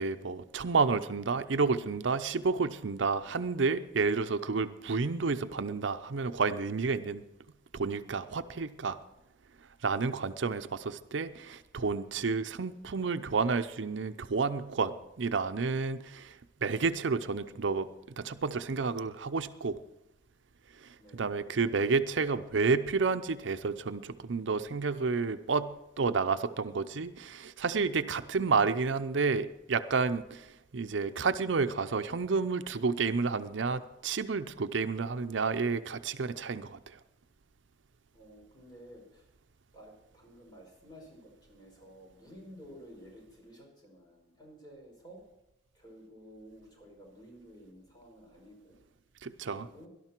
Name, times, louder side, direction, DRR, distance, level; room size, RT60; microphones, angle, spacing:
voice 1, 0.0-7.3 7.7-9.0 9.8-17.9 18.2-19.8 20.8-37.0 49.2-49.7, right 4 dB, 80° right, 11 dB, 0.6 m, -30 dB
voice 2, 21.0-21.5 38.1-39.3 39.7-45.2 45.7-48.8 49.5-49.9, equal, 20° left, -1 dB, 5.4 m, -53 dB
18.0 x 12.0 x 4.5 m, 0.89 s
head